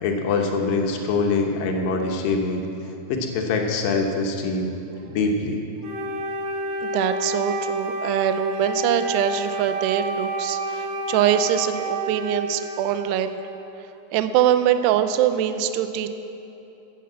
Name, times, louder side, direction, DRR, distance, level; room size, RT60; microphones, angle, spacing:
voice 1, 0.0-2.6 3.1-4.7 5.1-5.6, left 3 dB, 70° left, 2 dB, 2.4 m, -24 dB
Wind instrument woodwind instrument, 5.8-13.5, right 1 dB, 65° right, 2.9 m, -29 dB
voice 2, 6.8-13.4 14.1-16.1, right 10 dB, 80° right, 10 dB, 2.6 m, -23 dB
14.5 x 8.4 x 7.4 m, 2.9 s
omnidirectional pair, 5.0 m